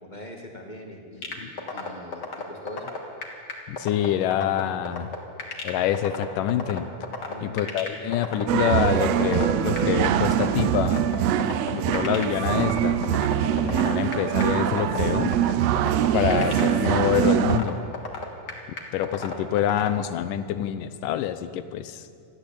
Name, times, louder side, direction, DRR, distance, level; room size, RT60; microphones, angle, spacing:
voice 1, 0.0-2.9 7.3-7.8, left 1 dB, 20° left, 2 dB, 1.5 m, -42 dB
sound 1, 1.2-19.9, left 4 dB, 35° left, 2.3 m, -33 dB
voice 2, 3.7-5.1 5.6-6.9 7.4-11.1 11.7-13.0 13.4-15.4 16.1-17.8 18.9-22.1, left 10 dB, 80° left, 12 dB, 2.5 m, -26 dB
sound 2, 8.5-17.6, right 10 dB, 75° right, 1.5 m, -23 dB
21.5 x 13.5 x 8.8 m, 2.5 s
omnidirectional pair, 3.8 m